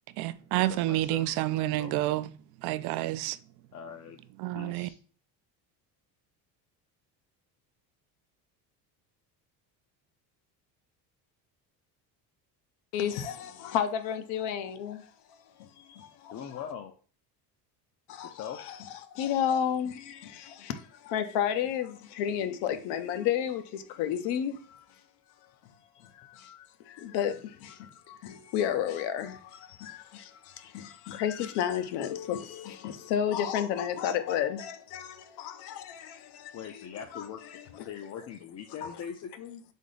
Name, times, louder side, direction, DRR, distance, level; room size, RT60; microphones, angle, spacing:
voice 1, 0.2-2.3 2.6-3.4 4.4-4.9, right 16 dB, 70° right, 0.5 m, -29 dB
voice 2, 0.7-1.4 1.7-2.2 3.7-4.2 4.5-5.0 16.3-16.9 18.2-18.7 36.5-37.4 37.7-39.6, left 8 dB, 40° left, 0.5 m, -42 dB
voice 3, 12.9-15.1 15.6-16.6 18.1-18.8 19.1-24.9 26.1-36.9 37.1-37.3 37.5-37.6 38.8-39.0, left 9 dB, 80° left, 0.7 m, -32 dB
3.7 x 3.6 x 3.9 m
cardioid pair, 130°, 40 cm